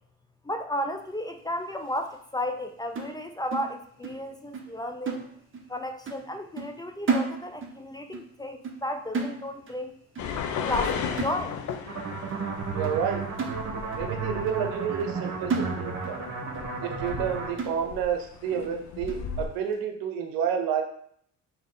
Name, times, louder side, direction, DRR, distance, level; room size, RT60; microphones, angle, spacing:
voice 1, 0.4-5.2 5.7-9.9 10.6-11.6, left 1 dB, 10° left, 6 dB, 0.4 m, -33 dB
sound 1, 3.0-4.3 4.5-4.8 5.1-5.8 6.1-6.3 6.6-7.8 8.1-8.3 8.6-8.9 9.1-9.8 10.2-10.4 10.7-10.9 11.2-11.8 12.3-12.4 12.8-13.0 13.4-14.1 14.5-14.6 15.0-15.2 15.5-16.2 16.5-16.6 17.1-17.2 17.6-18.1 18.6-18.7 19.1-19.3, right 4 dB, 35° right, 0.9 m, -33 dB
sound 2, 10.2-19.5, left 7 dB, 55° left, 0.6 m, -36 dB
sound 3, 11.9-17.5, right 4 dB, 50° right, 1.1 m, -33 dB
voice 2, 12.7-13.2 14.0-16.2 16.8-20.8, right 8 dB, 80° right, 5 dB, 0.8 m, -30 dB
3.7 x 2.9 x 3.8 m, 0.65 s
supercardioid pair, 75°, 35 cm